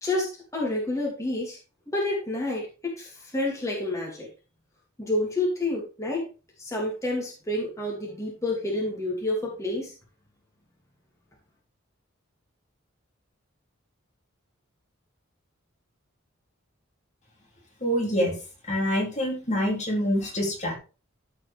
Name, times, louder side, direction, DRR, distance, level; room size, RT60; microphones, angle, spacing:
voice 1, 0.0-1.6 1.9-4.3 5.0-6.3 6.6-9.9, left 2 dB, 15° left, -3 dB, 2.5 m, -29 dB
voice 2, 17.8-18.4 18.6-20.7, equal, 35° left, 0 dB, 2.9 m, -26 dB
14.0 x 5.0 x 3.4 m, 0.32 s
head